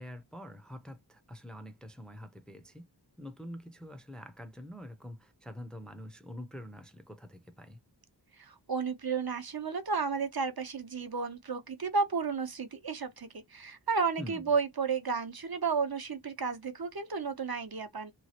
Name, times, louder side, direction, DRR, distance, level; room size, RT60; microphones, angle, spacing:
voice 1, 0.0-2.9 3.2-7.8 14.2-14.4, equal, ahead, 0.5 m, -45 dB
voice 2, 8.4-18.1, right 5 dB, 55° right, 0.7 m, -32 dB
3.0 x 2.4 x 2.7 m
wide cardioid pair, 50°, 44 cm